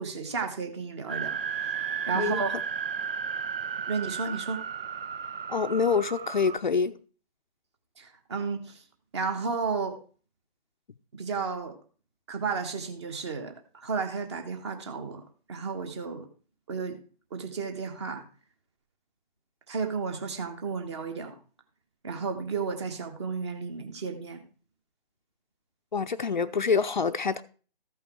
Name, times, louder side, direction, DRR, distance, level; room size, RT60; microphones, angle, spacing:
voice 1, 0.0-2.5 3.9-4.6 8.0-8.8 9.1-10.0 11.1-11.8 12.3-15.2 15.5-16.3 16.7-17.0 17.3-18.2 19.7-21.3 22.0-24.4, right 5 dB, 30° right, 1.3 m, -33 dB
sound 1, 1.1-6.6, right 7 dB, 65° right, 0.5 m, -34 dB
voice 2, 5.5-7.0 25.9-27.4, left 5 dB, 50° left, 0.6 m, -26 dB
13.5 x 5.6 x 4.5 m
figure-of-eight pair, 145°, 30 cm